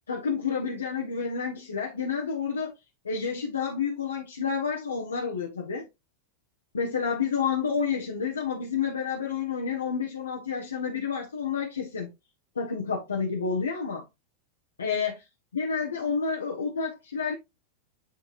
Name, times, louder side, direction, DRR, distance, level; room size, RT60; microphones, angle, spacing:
voice 1, 0.1-2.7 3.0-5.9 6.7-12.1 12.5-14.0 14.8-15.2 15.5-17.3, left 6 dB, 70° left, 1.3 m, -29 dB
9.5 x 4.7 x 2.6 m
figure-of-eight pair, 90°, 0 cm